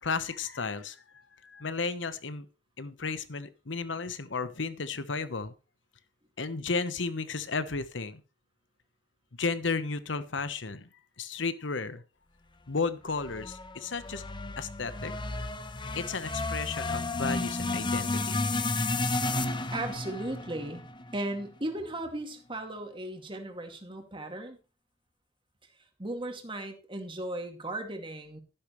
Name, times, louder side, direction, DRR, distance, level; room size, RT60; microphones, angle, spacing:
voice 1, 0.0-2.5 2.8-5.5 6.4-8.2 9.4-10.9 11.2-12.0 12.7-14.2 14.6-15.1 15.9-18.4, left 4 dB, 75° left, 13 dB, 1.1 m, -33 dB
sound 1, 13.1-21.5, left 2 dB, 25° left, 0.9 m, -32 dB
voice 2, 19.7-20.8 21.1-24.6 26.0-28.4, right 1 dB, 30° right, 4 dB, 2.2 m, -36 dB
12.0 x 11.5 x 3.2 m, 0.32 s
head